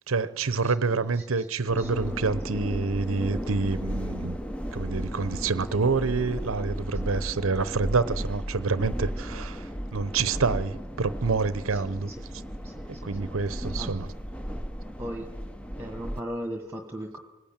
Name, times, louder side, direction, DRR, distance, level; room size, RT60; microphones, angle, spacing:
voice 1, 0.1-4.4 4.7-9.6 9.9-12.1 13.0-14.1, right 4 dB, 75° right, 15 dB, 0.8 m, -27 dB
voice 2, 0.6-2.3 6.9-7.1 11.7-12.3 12.6-13.3 13.8-13.9 15.0-15.3 15.8-17.2, right 1 dB, 10° right, 4 dB, 1.4 m, -39 dB
sound 1, 1.7-16.2, equal, 5° left, 0.7 m, -35 dB
28.0 x 19.5 x 8.9 m, 1.3 s
head